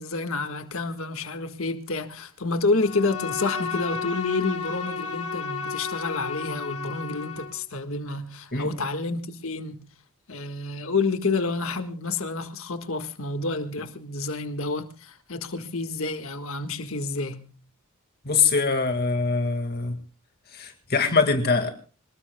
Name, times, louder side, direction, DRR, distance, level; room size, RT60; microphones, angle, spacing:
voice 1, 0.0-9.9 10.3-17.5, left 3 dB, 65° left, 1.6 m, -29 dB
Bowed string instrument, 2.8-7.6, left 5 dB, 85° left, 3.8 m, -33 dB
voice 2, 18.2-20.0 20.5-21.7, left 4 dB, 45° left, 2.0 m, -23 dB
27.0 x 20.0 x 2.3 m
head